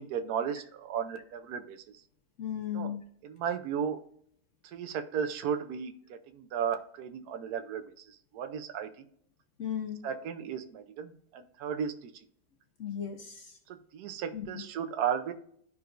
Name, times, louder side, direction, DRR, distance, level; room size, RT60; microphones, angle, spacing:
voice 1, 0.0-1.8 2.7-3.0 3.2-4.0 4.6-7.8 8.3-8.9 10.0-12.1 13.7-15.3, right 8 dB, 70° right, 7 dB, 1.2 m, -34 dB
voice 2, 2.4-3.0 9.6-10.0 12.8-13.6 14.3-14.6, left 9 dB, 55° left, 3 dB, 1.1 m, -36 dB
12.5 x 4.7 x 2.5 m, 0.63 s
omnidirectional pair, 1.8 m